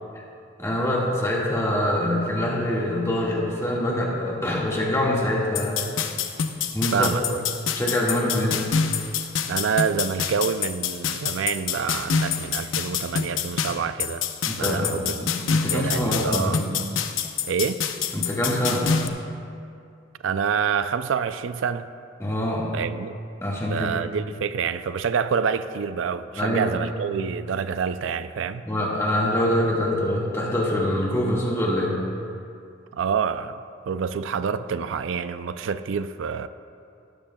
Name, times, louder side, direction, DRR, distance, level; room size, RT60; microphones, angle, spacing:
voice 1, 0.6-5.8 6.7-7.1 7.7-8.7 14.4-16.6 18.1-19.0 22.2-22.7 23.4-23.9 26.3-26.8 28.6-32.0, left 1 dB, 15° left, 1.7 m, -24 dB
sound 1, 5.6-19.1, left 6 dB, 90° left, 0.7 m, -27 dB
voice 2, 6.9-7.4 9.5-14.3 14.6-15.2 15.7-16.6 17.4-17.8 20.2-21.9 22.7-23.1 23.7-28.7 32.9-33.6 33.9-36.5, right 6 dB, 85° right, 0.4 m, -27 dB
17.0 x 13.0 x 2.3 m
head